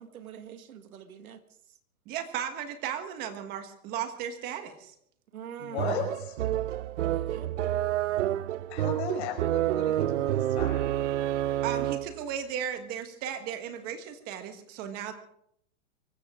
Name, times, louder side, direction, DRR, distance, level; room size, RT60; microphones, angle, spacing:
voice 1, 0.0-1.4 1.7-1.8 5.3-6.1 7.0-7.5, right 9 dB, 80° right, 9 dB, 2.0 m, -45 dB
voice 2, 2.0-4.9 11.6-15.1, right 9 dB, 20° right, 8 dB, 1.5 m, -35 dB
voice 3, 5.6-6.4 8.7-10.9, left 7 dB, 50° left, 1 dB, 5.7 m, -36 dB
sound 1, 5.8-12.2, right 12 dB, 60° right, 0.5 m, -29 dB
24.0 x 14.5 x 3.7 m, 0.70 s
hypercardioid pair, 165°, 42 cm